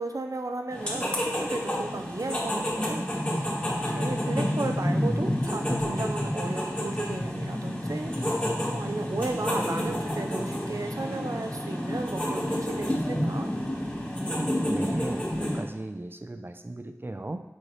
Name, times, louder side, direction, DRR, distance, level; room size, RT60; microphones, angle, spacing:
voice 1, 0.0-3.1 3.8-13.5, right 2 dB, 85° right, 5 dB, 0.5 m, -35 dB
sound 1, 0.7-15.6, equal, 20° left, 1.5 m, -29 dB
voice 2, 14.7-17.4, right 2 dB, 40° right, 8 dB, 0.5 m, -36 dB
7.1 x 4.5 x 3.2 m, 1.0 s
wide cardioid pair, 45°, 6 cm